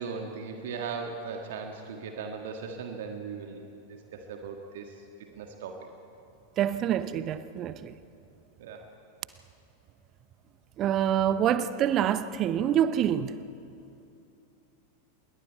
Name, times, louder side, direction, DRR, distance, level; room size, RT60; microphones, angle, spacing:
voice 1, 0.0-5.0 5.4-5.9 8.6-8.9, right 5 dB, 55° right, 1.7 m, -38 dB
voice 2, 6.6-7.9 10.8-13.4, right 10 dB, 35° right, 0.8 m, -26 dB
27.5 x 22.0 x 4.6 m
figure-of-eight pair, 90°, 0 cm